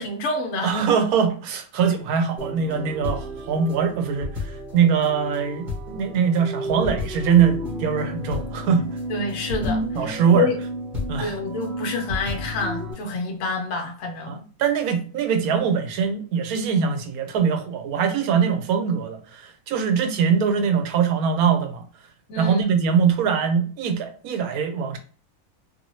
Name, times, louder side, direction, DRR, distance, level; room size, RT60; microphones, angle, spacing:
voice 1, 0.0-0.7 9.1-10.6 11.2-14.4 22.3-22.7, left 3 dB, 70° left, 1.0 m, -28 dB
voice 2, 0.6-8.8 9.9-10.5 11.1-11.4 14.3-21.8 22.4-25.0, right 7 dB, 90° right, 1.1 m, -22 dB
sound 1, 2.4-12.9, left 1 dB, 35° right, 1.3 m, -31 dB
2.9 x 2.7 x 3.0 m
omnidirectional pair, 1.5 m